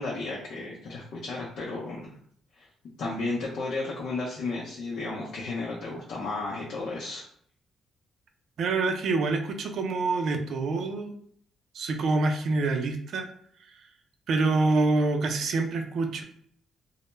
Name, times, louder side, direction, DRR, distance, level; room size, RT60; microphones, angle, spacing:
voice 1, 0.0-2.1 2.6-2.7 3.0-7.3, left 3 dB, 70° left, -4 dB, 0.5 m, -33 dB
voice 2, 8.6-11.1 11.7-13.3 14.3-16.2, right 3 dB, 65° right, 5 dB, 0.4 m, -26 dB
2.1 x 2.0 x 3.0 m, 0.62 s
cardioid pair, 110°, 0 cm